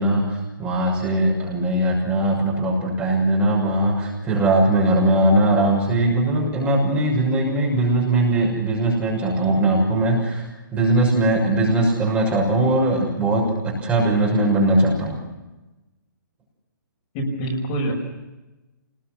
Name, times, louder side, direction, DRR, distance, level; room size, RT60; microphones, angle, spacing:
voice 1, 0.0-15.2, right 1 dB, 10° right, -1 dB, 6.5 m, -20 dB
voice 2, 17.1-17.9, right 1 dB, 25° left, 0 dB, 6.0 m, -25 dB
26.0 x 20.5 x 6.2 m, 1.0 s
hypercardioid pair, 165°, 11 cm